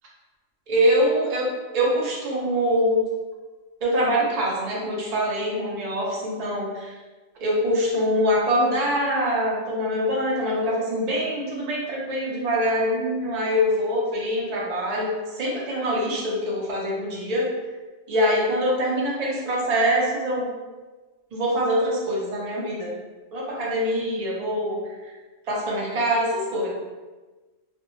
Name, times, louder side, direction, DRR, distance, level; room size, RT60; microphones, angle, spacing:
voice 1, 0.7-1.5 1.7-3.0 3.8-6.9 7.4-17.5 18.1-20.5 21.3-23.0 23.3-25.1 25.5-26.7, equal, 50° right, -3 dB, 0.4 m, -24 dB
2.5 x 2.1 x 2.9 m, 1.3 s
omnidirectional pair, 1.3 m